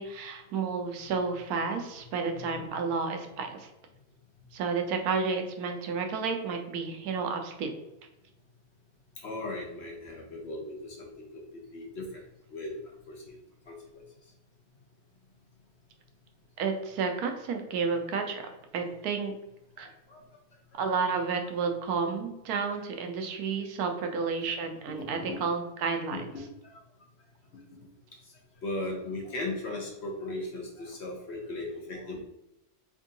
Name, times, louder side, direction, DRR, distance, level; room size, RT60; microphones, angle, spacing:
voice 1, 0.0-3.7 4.5-7.7 16.6-19.3 19.8-19.9 20.8-26.2, right 5 dB, 75° right, 5 dB, 1.1 m, -31 dB
voice 2, 9.2-11.4 11.7-12.2 12.5-12.7 13.1-13.4 19.8-20.2 21.1-21.2 22.0-22.1 25.3-25.4 26.1-26.2 26.6-26.8 28.6-32.2, left 2 dB, 55° left, -1 dB, 0.9 m, -37 dB
3.6 x 2.6 x 3.8 m, 0.88 s
omnidirectional pair, 1.6 m